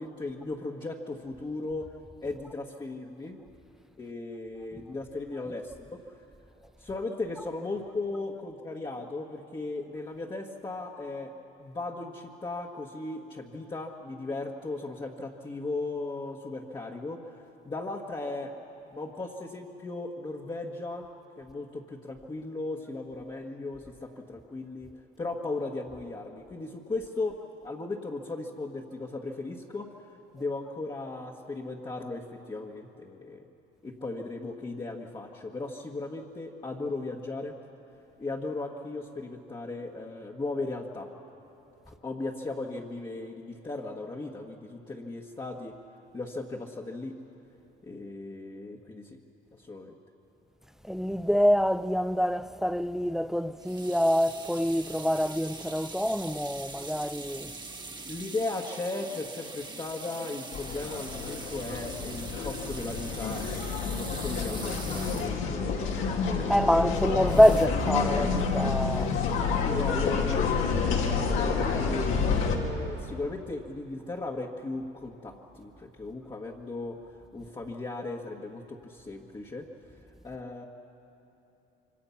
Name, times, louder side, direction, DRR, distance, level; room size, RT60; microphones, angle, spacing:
voice 1, 0.0-1.9 2.2-3.4 4.0-6.1 6.8-11.3 11.6-18.5 18.9-21.1 21.4-24.9 25.2-30.1 30.3-33.4 33.8-37.6 38.2-41.1 41.9-45.7 46.1-47.1 47.8-49.2 49.5-50.0 58.1-63.5 63.8-66.9 69.4-79.7 80.2-80.6, left 2 dB, 25° left, 1.6 m, -37 dB
voice 2, 50.8-57.5 66.5-69.2, equal, ahead, 0.6 m, -25 dB
sound 1, 53.6-66.0 67.3-67.7, right 3 dB, 20° right, 1.5 m, -43 dB
sound 2, 60.5-72.6, left 5 dB, 80° left, 2.8 m, -29 dB
26.5 x 24.0 x 5.9 m
cardioid pair, 95°, 21 cm